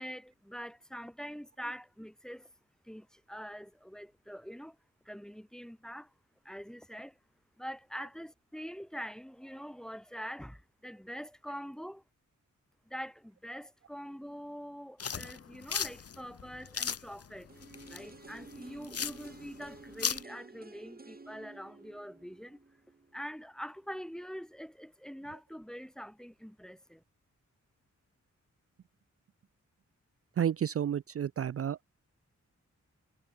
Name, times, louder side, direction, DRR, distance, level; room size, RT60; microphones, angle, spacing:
voice 1, 0.0-2.5 2.8-4.8 5.1-6.1 6.4-7.2 7.6-12.0 12.9-17.5 17.9-22.6 23.1-27.0, equal, ahead, 2.1 m, -44 dB
sound 1, 15.0-20.2, left 6 dB, 55° left, 1.2 m, -37 dB
sound 2, 17.5-23.4 23.7-23.8, right 3 dB, 30° right, 5.0 m, -52 dB
voice 2, 30.4-31.9, right 9 dB, 50° right, 0.5 m, -31 dB
wide cardioid pair, 120°, 30 cm